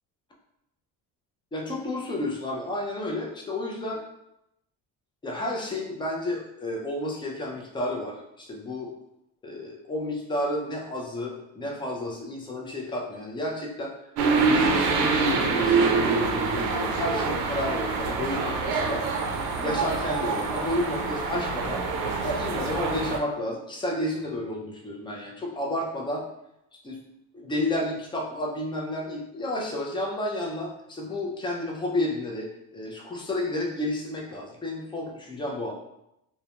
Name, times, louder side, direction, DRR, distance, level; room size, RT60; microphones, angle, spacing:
voice 1, 1.5-4.0 5.2-8.9 9.4-13.9 14.2-19.1 19.6-21.8 22.2-26.2 26.8-27.0 27.3-35.7, left 1 dB, 15° left, -1 dB, 0.3 m, -31 dB
sound 1, 14.2-23.2, right 4 dB, 75° right, 0.5 m, -25 dB
2.3 x 2.1 x 2.8 m, 0.83 s
cardioid pair, 125°, 39 cm